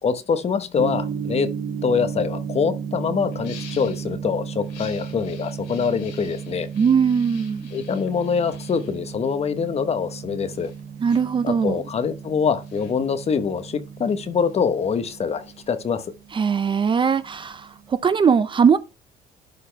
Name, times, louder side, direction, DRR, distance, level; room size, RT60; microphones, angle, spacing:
voice 1, 0.0-1.5 1.8-6.7 7.7-10.7 11.4-16.1, left 6 dB, 40° left, 1.0 m, -24 dB
Gong, 0.7-18.0, right 7 dB, 55° right, 3.4 m, -35 dB
Steam Iron used on board, 2.5-2.8 3.3-4.1 4.6-9.8 10.3-16.1, left 8 dB, 90° left, 2.3 m, -48 dB
voice 2, 6.7-7.7 11.0-11.8 16.3-18.8, right 6 dB, 30° right, 0.5 m, -20 dB
11.5 x 4.2 x 3.3 m
cardioid pair, 110°, 17 cm